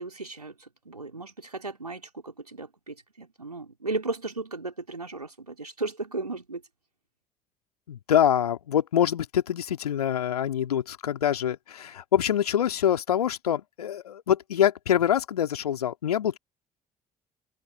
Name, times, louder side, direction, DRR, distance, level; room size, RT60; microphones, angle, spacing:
voice 1, 0.0-6.6, right 3 dB, 90° right, 4.2 m, -35 dB
voice 2, 7.9-16.4, left 10 dB, 80° left, 2.8 m, -25 dB
figure-of-eight pair, 50°, 19 cm